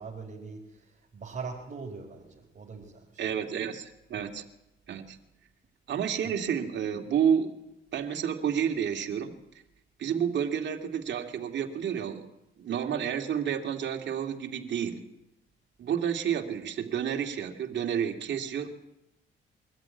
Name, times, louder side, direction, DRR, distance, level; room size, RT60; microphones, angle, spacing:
voice 1, 0.0-3.2 6.2-6.3, right 4 dB, 40° right, -3 dB, 4.3 m, -42 dB
voice 2, 3.2-4.4 4.9-5.2 5.9-7.5 7.9-9.3 10.0-12.2 12.6-15.0 15.8-18.7, right 8 dB, 65° right, 3 dB, 2.4 m, -30 dB
23.0 x 14.0 x 9.6 m, 0.90 s
cardioid pair, 90°, 20 cm